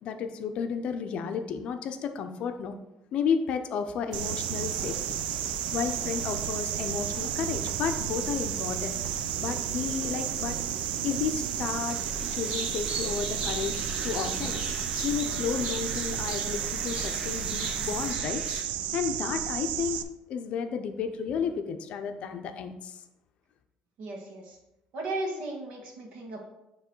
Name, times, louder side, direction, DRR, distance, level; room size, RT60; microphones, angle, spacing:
voice 1, 0.0-2.7 3.1-5.2 5.7-10.6 11.0-14.6 15.0-18.4 18.9-20.0 20.3-23.0, left 6 dB, 50° left, 7 dB, 0.6 m, -32 dB
sound 1, 4.1-18.1, right 2 dB, 10° right, 0.5 m, -44 dB
sound 2, 4.1-20.0, right 11 dB, 85° right, 0.4 m, -32 dB
sound 3, 11.9-18.6, right 1 dB, 35° right, 1.5 m, -37 dB
voice 2, 24.0-24.6 24.9-26.4, right 2 dB, 65° right, 1 dB, 1.6 m, -35 dB
9.2 x 3.1 x 4.5 m, 0.92 s
cardioid pair, 160°, 2 cm